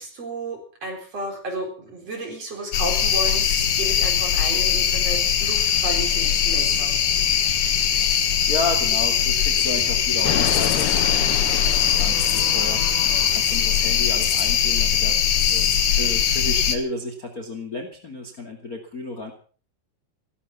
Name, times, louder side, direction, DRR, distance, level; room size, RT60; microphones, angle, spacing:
voice 1, 0.0-7.0, right 2 dB, 40° right, 3 dB, 5.0 m, -33 dB
sound 1, 2.7-16.8, left 8 dB, 60° left, 2.8 m, -21 dB
voice 2, 8.5-19.3, left 2 dB, 30° left, 5 dB, 2.1 m, -32 dB
sound 2, 10.2-14.3, left 12 dB, 80° left, 3.0 m, -30 dB
16.0 x 14.5 x 5.9 m, 0.41 s
omnidirectional pair, 4.5 m